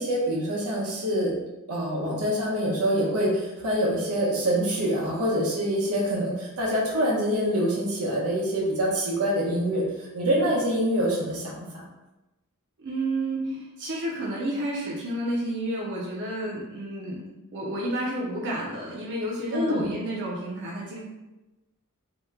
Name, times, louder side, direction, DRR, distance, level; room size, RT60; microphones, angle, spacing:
voice 1, 0.0-1.3 1.7-9.8 10.1-11.7 13.4-13.5 19.5-19.9, equal, 90° right, -3 dB, 0.9 m, -25 dB
voice 2, 12.8-21.0, right 1 dB, 55° right, -4 dB, 0.6 m, -31 dB
2.9 x 2.2 x 3.5 m, 1.0 s
head